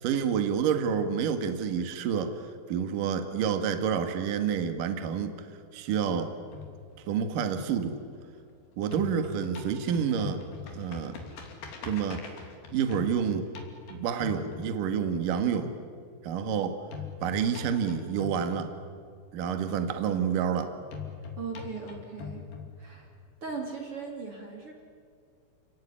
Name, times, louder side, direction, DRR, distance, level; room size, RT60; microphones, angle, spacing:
voice 1, 0.0-2.3 2.7-5.3 5.7-6.3 7.1-7.9 8.8-10.4 10.7-11.2 11.8-12.2 12.7-13.5 13.9-15.7 16.2-16.8 17.2-18.7 19.3-20.7, right 7 dB, 60° right, 8 dB, 3.0 m, -28 dB
sound 1, 6.5-8.5 8.8-15.3 16.9-19.3 20.9-23.3, left 5 dB, 60° left, 4.5 m, -42 dB
voice 2, 21.4-22.4 22.8-23.1 23.4-24.7, right 4 dB, 35° right, 1 dB, 3.2 m, -38 dB
30.0 x 19.5 x 10.0 m, 2.2 s
omnidirectional pair, 5.0 m